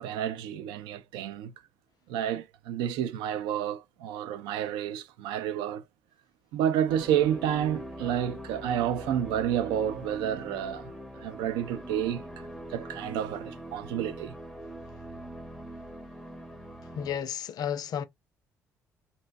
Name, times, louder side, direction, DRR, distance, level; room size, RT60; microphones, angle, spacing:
voice 1, 0.0-1.5 2.1-5.8 6.5-12.3 12.7-14.3, right 10 dB, 65° right, 0.4 m, -30 dB
sound 1, 6.9-17.2, equal, ahead, 0.6 m, -43 dB
voice 2, 16.9-18.0, left 9 dB, 50° left, 0.4 m, -32 dB
2.6 x 2.1 x 2.4 m
figure-of-eight pair, 50°, 8 cm